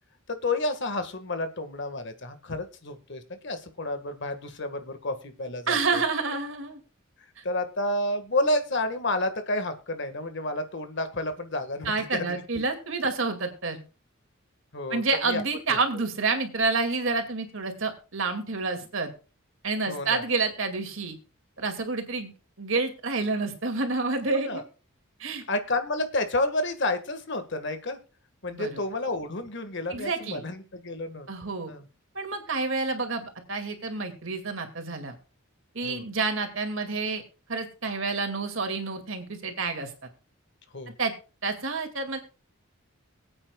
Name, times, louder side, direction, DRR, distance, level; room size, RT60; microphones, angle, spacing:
voice 1, 0.3-6.0 7.4-12.7 14.7-15.4 15.7-15.8 19.9-20.2 24.3-24.6 25.5-28.0 28.4-31.3 31.7-31.8 35.8-36.0 40.7-40.9, left 2 dB, 55° left, 8 dB, 1.7 m, -30 dB
voice 2, 5.7-6.8 7.4-7.5 11.8-13.8 14.9-19.1 19.6-21.2 21.6-22.3 22.6-24.6 25.2-25.4 28.5-28.8 29.9-30.4 31.3-31.7 32.1-35.1 35.7-37.2 37.5-39.9 41.0-41.1 41.4-42.2, right 3 dB, 65° right, 5 dB, 2.3 m, -29 dB
22.5 x 8.8 x 2.3 m, 0.33 s
head